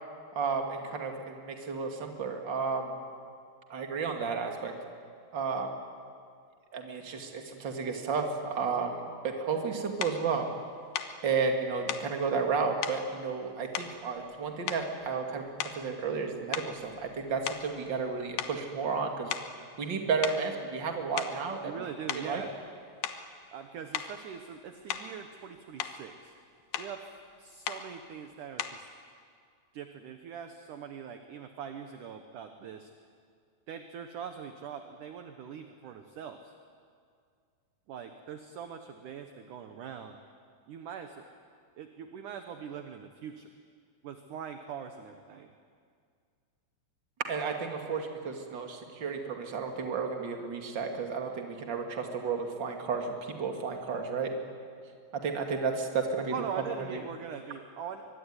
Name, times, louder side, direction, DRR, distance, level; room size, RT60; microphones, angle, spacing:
voice 1, 0.3-3.0 3.7-4.7 5.3-5.7 6.7-9.0 9.2-10.5 11.2-15.5 15.8-19.3 19.8-21.7 22.2-22.4 47.3-54.3 55.1-56.3, right 5 dB, 30° right, 3 dB, 2.4 m, -32 dB
sound 1, 10.0-10.2 10.9-11.2 11.9-12.1 12.8-13.0 13.7-14.4 14.7-15.1 15.6-15.9 16.5-18.1 18.4-18.6 19.3-19.6 20.2-20.5 21.0-21.5 22.1-22.3 23.0-23.3 23.9-24.2 24.9-25.2 25.6-26.0 26.7-27.0 27.7-27.9 28.6-28.9, left 10 dB, 70° left, 2.5 m, -36 dB
voice 2, 21.6-22.5 23.5-26.3 26.8-27.1 27.4-28.9 29.7-32.9 33.7-36.5 37.9-40.2 40.7-41.3 41.8-43.5 44.0-45.5 56.3-58.0, right 7 dB, 65° right, 6 dB, 2.1 m, -42 dB
24.0 x 24.0 x 9.9 m, 2.2 s
omnidirectional pair, 5.1 m